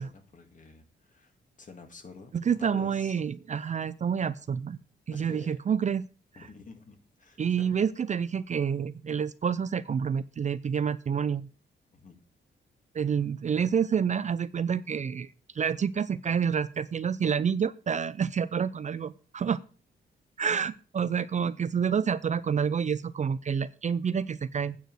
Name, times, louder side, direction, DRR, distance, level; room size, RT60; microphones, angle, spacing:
voice 1, 0.0-2.3 2.6-3.2 3.6-3.7 5.1-5.6 6.4-7.7 11.9-12.2, left 4 dB, 40° left, 5 dB, 2.1 m, -49 dB
voice 2, 2.3-4.8 5.1-6.1 7.4-11.5 12.9-19.6 20.4-24.8, right 7 dB, 40° right, 16 dB, 0.4 m, -28 dB
9.2 x 5.0 x 7.7 m, 0.37 s
cardioid pair, 110°, 19 cm